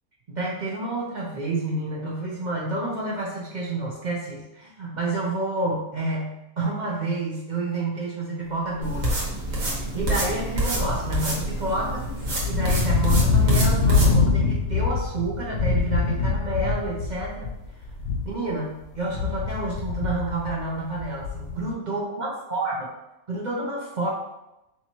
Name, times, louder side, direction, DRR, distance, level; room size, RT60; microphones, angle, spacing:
voice 1, 0.3-12.1 12.5-17.5 18.2-22.9 23.3-24.1, right 2 dB, 50° right, -4 dB, 0.5 m, -29 dB
sound 1, 8.8-14.1, right 1 dB, 65° right, 1.5 m, -27 dB
sound 2, 8.9-9.2 9.7-18.5 18.8-21.7, left 4 dB, 65° left, 0.6 m, -24 dB
4.7 x 2.8 x 2.9 m, 0.91 s
omnidirectional pair, 1.6 m